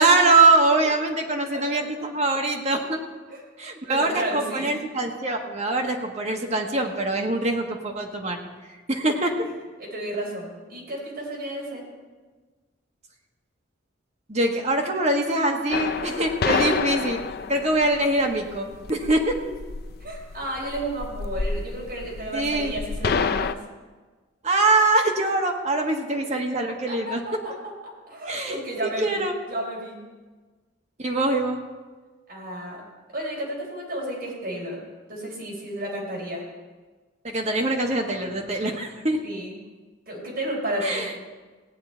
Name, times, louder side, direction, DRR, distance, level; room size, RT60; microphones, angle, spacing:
voice 1, 0.0-3.0 3.6-8.4 8.9-9.5 14.3-17.2 17.5-19.4 22.3-22.7 24.4-27.2 28.2-29.3 31.0-31.6 37.2-39.2 40.8-41.1, right 2 dB, 35° right, 2 dB, 1.3 m, -23 dB
voice 2, 3.9-4.7 9.8-11.8 16.5-16.8 19.4-19.5 20.0-23.6 26.9-27.5 27.8-30.0 32.3-32.8 33.1-34.8 35.1-36.4 39.2-39.6 40.1-41.1, right 1 dB, 50° right, -3 dB, 4.3 m, -32 dB
sound 1, 15.7-23.5, left 5 dB, 50° left, 0.4 m, -29 dB
17.0 x 8.8 x 4.4 m, 1.3 s
head